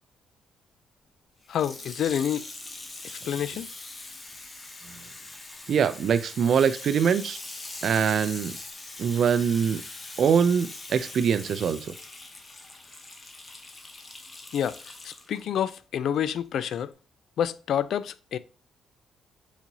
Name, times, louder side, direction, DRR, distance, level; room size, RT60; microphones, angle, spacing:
Water tap faucet / Sink (filling or washing), 1.4-15.4 16.1-16.2, left 2 dB, 25° left, 0.9 m, -42 dB
voice 1, 1.5-2.5 3.3-3.7 14.5-14.8 15.0-16.9 17.4-18.4, left 9 dB, 70° left, 0.3 m, -28 dB
voice 2, 5.7-7.4 7.8-8.6 9.0-9.8 10.2-11.8, right 7 dB, 60° right, 0.4 m, -23 dB
4.5 x 4.0 x 2.7 m
cardioid pair, 90°, 0 cm